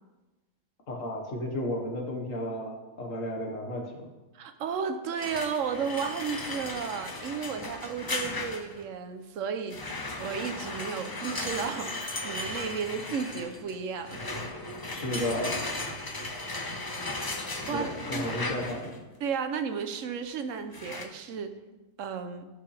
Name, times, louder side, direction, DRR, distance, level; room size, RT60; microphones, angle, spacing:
voice 1, 0.9-4.1 14.9-15.7 17.7-19.0, left 1 dB, 75° left, 1 dB, 1.9 m, -33 dB
voice 2, 4.3-12.0 12.2-14.2 17.5-18.3 19.2-21.6 22.0-22.4, right 6 dB, 70° right, 8 dB, 1.1 m, -33 dB
sound 1, 5.2-8.8 9.7-19.0 20.7-21.0, left 2 dB, 20° left, 0.6 m, -36 dB
15.0 x 5.4 x 3.3 m, 1.1 s
omnidirectional pair, 1.4 m